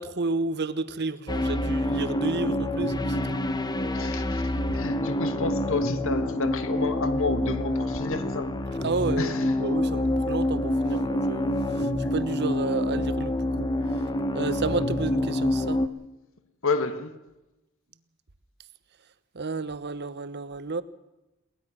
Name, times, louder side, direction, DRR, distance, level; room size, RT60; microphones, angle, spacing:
voice 1, 0.0-3.4 4.7-4.8 8.8-13.7 14.3-15.8 19.3-20.8, right 3 dB, 50° right, 1.0 m, -31 dB
sound 1, 1.3-15.9, left 1 dB, 20° left, 0.9 m, -27 dB
voice 2, 3.9-8.5 9.2-9.6 12.0-12.1 16.6-17.1, left 3 dB, 65° left, 1.4 m, -30 dB
22.0 x 18.5 x 6.2 m
head